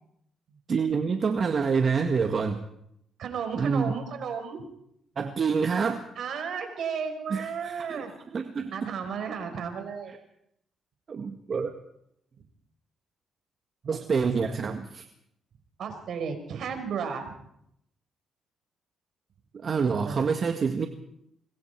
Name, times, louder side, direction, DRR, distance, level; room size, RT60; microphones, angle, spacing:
voice 1, 0.7-2.6 3.5-3.9 5.2-6.1 7.3-8.9 10.1-10.2 11.1-11.7 13.8-15.0 19.6-20.9, right 5 dB, 45° right, 5 dB, 1.7 m, -27 dB
voice 2, 3.2-4.6 6.2-8.1 8.7-10.1 15.8-17.3 20.0-20.3, right 6 dB, 65° right, 6 dB, 5.0 m, -33 dB
26.0 x 22.5 x 4.7 m, 0.76 s
cardioid pair, 90°, 0 cm